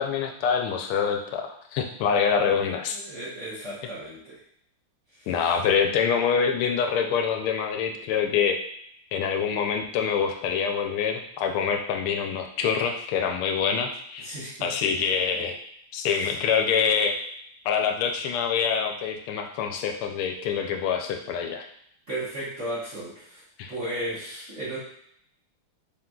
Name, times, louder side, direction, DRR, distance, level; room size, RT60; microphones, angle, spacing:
voice 1, 0.0-3.0 5.3-8.5 9.1-14.3 14.6-15.5 15.9-17.2 17.6-21.7 23.6-23.7, left 6 dB, 85° left, 3 dB, 1.5 m, -25 dB
voice 2, 2.4-4.4 5.2-5.4 14.2-15.5 16.1-16.3 22.1-23.4 23.7-24.8, right 1 dB, 45° right, -8 dB, 1.0 m, -36 dB
4.4 x 3.7 x 2.3 m, 0.68 s
omnidirectional pair, 2.4 m